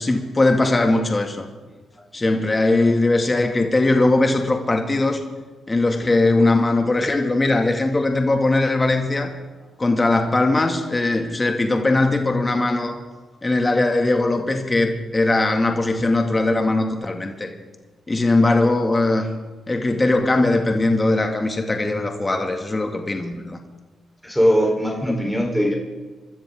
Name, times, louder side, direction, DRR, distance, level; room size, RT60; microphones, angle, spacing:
voice 1, 0.0-1.5 2.1-5.2 5.7-9.3 9.8-13.0 13.4-17.5 18.1-19.3 19.7-23.6, left 2 dB, 30° left, 4 dB, 2.1 m, -20 dB
voice 2, 24.2-25.7, equal, 5° left, 0 dB, 3.9 m, -20 dB
25.0 x 13.0 x 3.7 m, 1.3 s
supercardioid pair, 55°, 0 cm